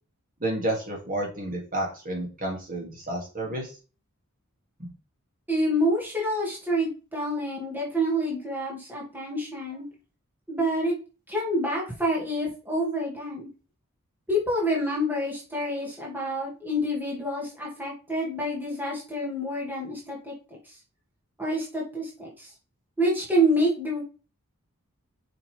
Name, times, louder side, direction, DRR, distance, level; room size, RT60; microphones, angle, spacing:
voice 1, 0.4-3.7, right 1 dB, 40° right, 0 dB, 2.6 m, -30 dB
voice 2, 5.5-9.8 10.5-11.0 11.3-13.5 14.3-20.7 21.4-22.5 23.0-24.0, equal, 10° right, -4 dB, 2.4 m, -27 dB
7.0 x 5.8 x 3.5 m, 0.34 s
head